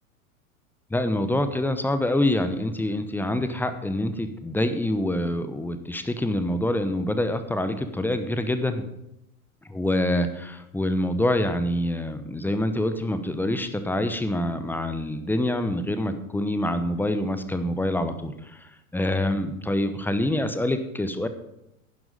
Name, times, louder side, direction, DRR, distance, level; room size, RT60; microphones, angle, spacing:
voice 1, 0.9-8.8 9.7-21.3, left 1 dB, 5° left, 9 dB, 0.9 m, -26 dB
11.0 x 10.5 x 5.1 m, 0.84 s
figure-of-eight pair, 90°, 43 cm